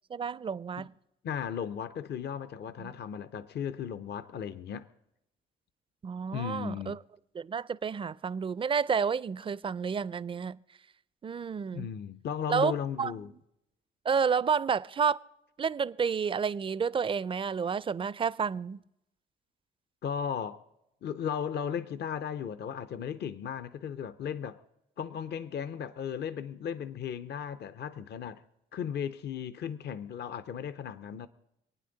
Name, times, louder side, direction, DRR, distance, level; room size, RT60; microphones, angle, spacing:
voice 1, 0.1-0.9 2.8-2.9 6.0-7.0 7.3-10.6 11.2-11.9 12.5-13.1 14.1-15.2 15.6-18.8, right 6 dB, 25° right, 0.4 m, -30 dB
voice 2, 1.2-4.9 6.3-7.0 11.7-13.3 20.0-20.6 21.0-24.6 25.0-28.4 28.7-31.3, left 8 dB, 60° left, 0.6 m, -36 dB
27.0 x 9.4 x 3.9 m
cardioid pair, 90°, 20 cm